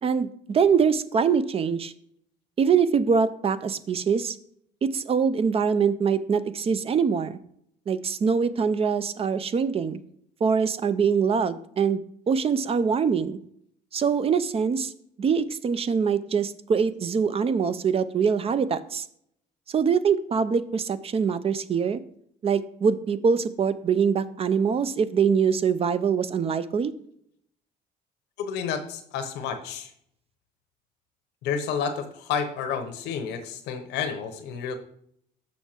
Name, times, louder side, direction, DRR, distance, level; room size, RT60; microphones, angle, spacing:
voice 1, 0.0-1.9 2.6-4.4 4.9-7.4 7.9-10.0 10.4-13.4 13.9-14.9 15.2-19.0 19.7-22.0 22.4-26.9, right 6 dB, 35° right, 14 dB, 0.5 m, -24 dB
voice 2, 28.4-29.9 31.4-34.8, left 6 dB, 85° left, 7 dB, 0.9 m, -30 dB
6.4 x 5.7 x 4.4 m, 0.69 s
cardioid pair, 110°, 17 cm